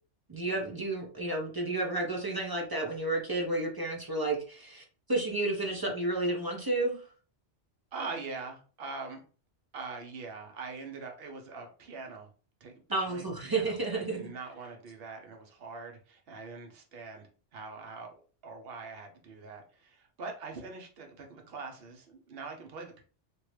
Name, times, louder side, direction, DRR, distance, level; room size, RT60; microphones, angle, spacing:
voice 1, 0.3-4.8 5.1-7.0 12.9-14.2, right 2 dB, 30° right, 0 dB, 0.4 m, -31 dB
voice 2, 7.9-9.2 9.7-12.3 12.6-23.0, right 4 dB, 60° right, 3 dB, 0.9 m, -43 dB
3.0 x 2.6 x 3.1 m, 0.39 s
omnidirectional pair, 1.2 m